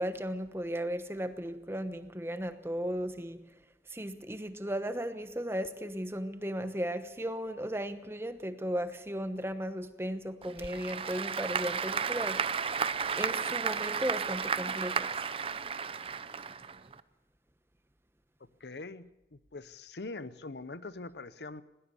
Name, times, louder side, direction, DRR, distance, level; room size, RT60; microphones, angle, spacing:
voice 1, 0.0-3.5 3.9-12.7 13.0-15.3, equal, 15° right, 1.0 m, -36 dB
Applause / Crowd, 10.4-17.0, right 6 dB, 30° right, 0.6 m, -33 dB
voice 2, 18.6-21.6, left 3 dB, 70° left, 0.8 m, -43 dB
20.5 x 18.0 x 7.1 m
head